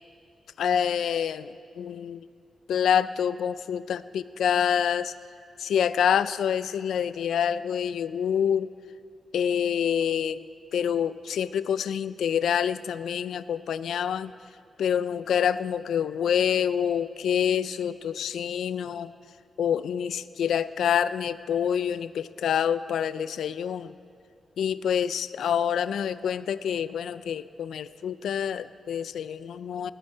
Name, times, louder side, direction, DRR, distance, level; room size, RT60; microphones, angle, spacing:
voice 1, 0.6-2.2 2.7-5.1 5.6-8.7 9.3-10.5 10.7-14.3 14.8-19.1 19.6-23.9 24.6-29.9, left 8 dB, 85° left, 16 dB, 0.3 m, -27 dB
18.0 x 8.8 x 4.4 m, 2.5 s
wide cardioid pair, 160°, 0 cm